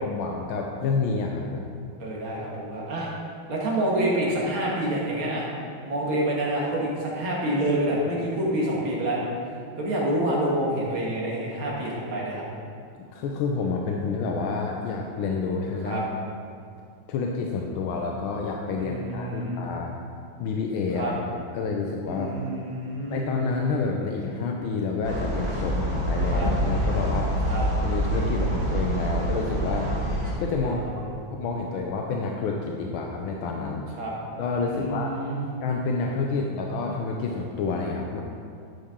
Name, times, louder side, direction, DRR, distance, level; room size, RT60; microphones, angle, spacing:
voice 1, 0.0-1.6 13.0-16.1 17.1-20.0 20.4-21.2 21.5-22.3 23.1-27.4 27.8-29.9 30.4-30.8 31.3-33.9 34.4-35.2 35.6-38.2, left 4 dB, 85° left, 1 dB, 1.5 m, -29 dB
voice 2, 2.0-3.1 3.5-5.5 5.9-9.2 9.8-12.4 15.8-16.0 18.8-19.6 20.9-21.1 22.1-23.3 26.3-26.5 27.5-27.7 30.6-31.2 33.9-34.1 34.7-35.4, right 1 dB, 85° right, -4 dB, 2.4 m, -27 dB
sound 1, 25.0-30.3, equal, 65° right, 2.9 m, -26 dB
11.5 x 6.5 x 3.7 m, 2.3 s
omnidirectional pair, 2.2 m